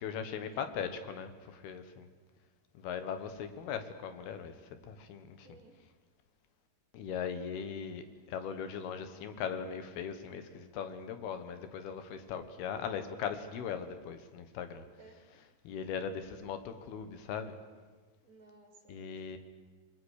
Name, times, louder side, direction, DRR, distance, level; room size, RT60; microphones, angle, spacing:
voice 1, 0.0-2.1 2.8-5.5 6.9-14.9 15.7-17.6 18.9-19.4, left 7 dB, 85° left, 9 dB, 3.4 m, -39 dB
voice 2, 5.4-5.8 15.0-15.4 18.2-19.4, right 3 dB, 35° right, 4 dB, 2.6 m, -58 dB
28.0 x 21.5 x 6.6 m, 1.4 s
omnidirectional pair, 4.4 m